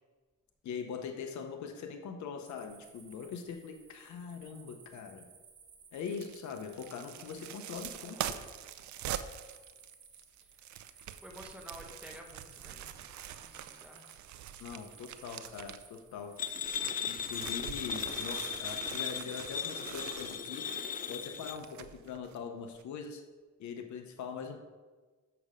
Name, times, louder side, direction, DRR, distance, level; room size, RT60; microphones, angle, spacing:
voice 1, 0.6-5.3 5.9-8.4 14.6-16.6 17.1-20.7 21.1-23.2 23.6-24.6, left 6 dB, 70° left, 5 dB, 0.8 m, -42 dB
sound 1, 2.4-21.8, right 6 dB, 45° right, 1.6 m, -58 dB
sound 2, 6.1-16.0 16.4-22.4 22.8-22.9, right 11 dB, 70° right, 0.5 m, -44 dB
voice 2, 10.4-14.1, equal, 5° right, 1 dB, 1.3 m, -52 dB
sound 3, 16.4-21.6, left 7 dB, 30° left, 0.4 m, -37 dB
7.0 x 6.6 x 5.0 m, 1.4 s
cardioid pair, 90°, 30 cm